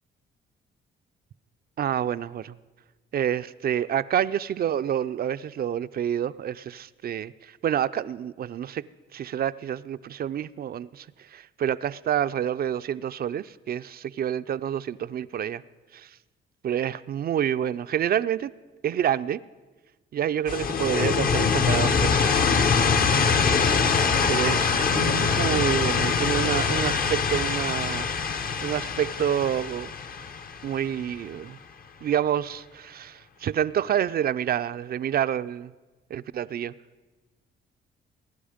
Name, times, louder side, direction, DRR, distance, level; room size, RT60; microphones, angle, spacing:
voice 1, 1.8-2.5 3.1-8.8 9.1-11.1 11.3-15.6 15.9-16.1 16.6-18.5 18.8-19.4 20.1-22.7 24.3-28.1 28.4-29.9 30.6-31.6 32.0-35.7 36.1-36.7, right 10 dB, 50° right, 13 dB, 0.4 m, -28 dB
sound 1, 20.5-31.2, left 5 dB, 45° left, 0.9 m, -23 dB
21.0 x 11.0 x 5.0 m, 1.2 s
cardioid pair, 90°, 20 cm